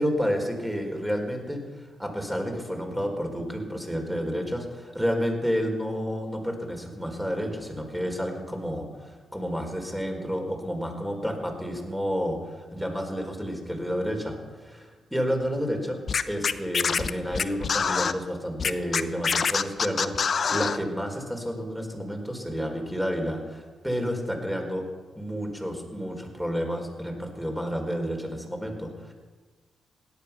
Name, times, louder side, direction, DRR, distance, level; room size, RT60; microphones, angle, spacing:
voice 1, 0.0-16.0 16.3-24.8 25.2-29.1, equal, 5° right, 2 dB, 4.6 m, -30 dB
Scratching (performance technique), 16.1-18.1 18.6-20.8, left 5 dB, 50° left, 0.8 m, -25 dB
17.0 x 11.5 x 6.1 m, 1.3 s
hypercardioid pair, 40°, 0 cm